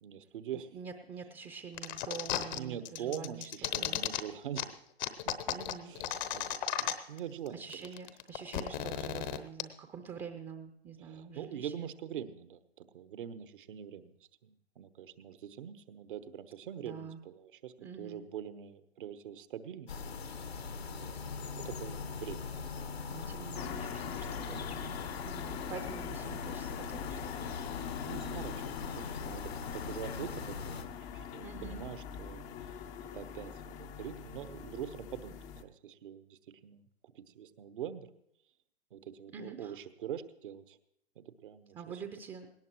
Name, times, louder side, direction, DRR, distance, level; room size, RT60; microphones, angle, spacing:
voice 1, 0.0-0.7 2.5-4.8 5.2-5.3 5.8-7.9 11.0-14.1 14.4-19.9 20.3-20.5 20.9-22.4 22.8-22.9 28.0-30.8 31.1-38.1 38.9-40.8 41.2-41.8, right 9 dB, 55° right, 13 dB, 1.1 m, -44 dB
voice 2, 0.7-3.5 3.8-4.0 5.5-5.9 7.1-7.2 7.5-11.9 16.8-17.2 17.8-18.3 23.1-27.8 31.4-31.8 39.3-39.8 41.7-42.5, right 6 dB, 15° right, 7 dB, 0.7 m, -46 dB
sound 1, 1.8-2.6 2.9-4.2 4.6-4.7 5.0-7.2 7.5-7.6 7.7-9.6, left 11 dB, 45° left, 1.0 m, -34 dB
sound 2, 19.9-30.8, left 5 dB, 75° left, 1.5 m, -41 dB
sound 3, 23.5-35.6, left 8 dB, 25° left, 0.6 m, -43 dB
19.5 x 18.0 x 3.1 m, 0.77 s
figure-of-eight pair, 115°, 31 cm